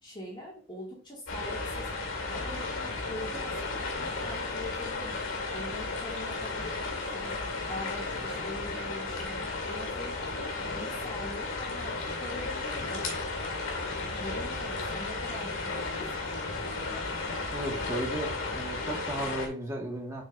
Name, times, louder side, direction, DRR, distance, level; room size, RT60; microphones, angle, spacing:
voice 1, 0.0-1.9 2.3-5.2 5.5-7.3 7.7-9.4 9.7-10.2 10.6-13.8 14.1-17.0, left 1 dB, 25° left, -4 dB, 2.4 m, -43 dB
sound 1, 1.3-19.5, left 3 dB, 80° left, 2.1 m, -34 dB
voice 2, 17.5-20.2, right 1 dB, 15° right, -1 dB, 1.8 m, -35 dB
7.4 x 5.4 x 2.6 m, 0.38 s
head